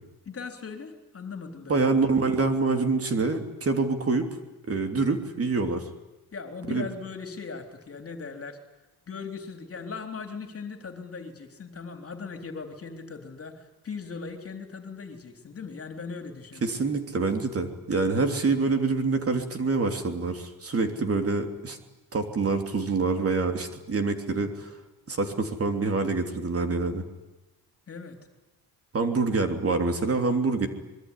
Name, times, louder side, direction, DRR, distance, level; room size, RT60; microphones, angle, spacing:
voice 1, 0.3-1.9 6.3-8.6 9.1-16.6 27.9-28.2, left 5 dB, 35° left, 6 dB, 3.8 m, -39 dB
voice 2, 1.7-4.3 4.7-5.9 6.7-6.9 16.6-21.8 22.1-24.7 25.1-27.0 28.9-30.7, right 3 dB, 35° right, 6 dB, 3.2 m, -26 dB
24.5 x 22.5 x 10.0 m, 1.0 s
cardioid pair, 130°, 39 cm